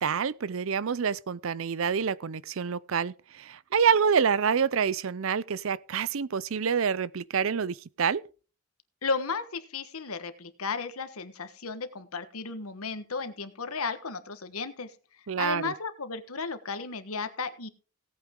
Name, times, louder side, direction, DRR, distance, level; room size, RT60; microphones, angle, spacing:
voice 1, 0.0-8.2 15.3-15.7, right 6 dB, 70° right, 0.5 m, -27 dB
voice 2, 9.0-14.9 15.4-17.7, left 4 dB, 90° left, 1.4 m, -34 dB
17.5 x 8.6 x 3.8 m
head